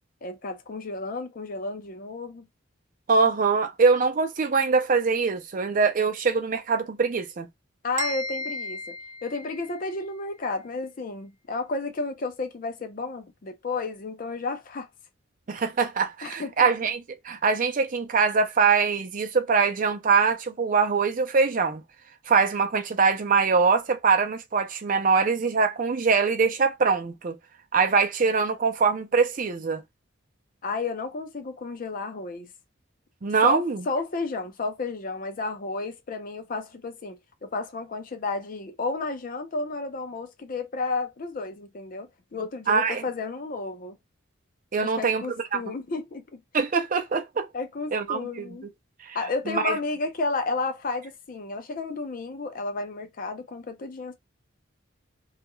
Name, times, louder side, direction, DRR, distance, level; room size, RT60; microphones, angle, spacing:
voice 1, 0.2-2.5 7.8-9.0 9.2-14.9 16.2-16.7 30.6-32.5 33.4-44.0 44.8-46.4 47.5-48.7 49.1-54.1, left 3 dB, 45° left, 0.5 m, -32 dB
voice 2, 3.1-7.5 15.5-21.8 22.3-27.4 27.7-29.8 33.2-33.8 42.7-43.0 44.7-45.6 46.5-47.5 47.9-48.6 49.0-49.2 49.5-49.8, right 5 dB, 40° right, 0.5 m, -23 dB
sound 1, 8.0-10.0, left 1 dB, 85° right, 0.6 m, -34 dB
2.3 x 2.1 x 2.9 m
head